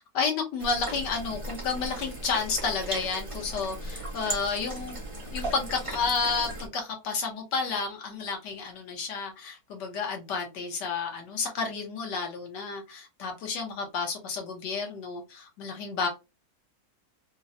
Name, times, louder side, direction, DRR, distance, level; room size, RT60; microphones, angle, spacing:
voice 1, 0.1-5.0 5.3-16.1, left 5 dB, 80° left, 3 dB, 1.5 m, -31 dB
sound 1, 0.6-6.7, right 1 dB, 25° right, 0.7 m, -37 dB
3.8 x 2.0 x 2.5 m, 0.26 s
omnidirectional pair, 1.8 m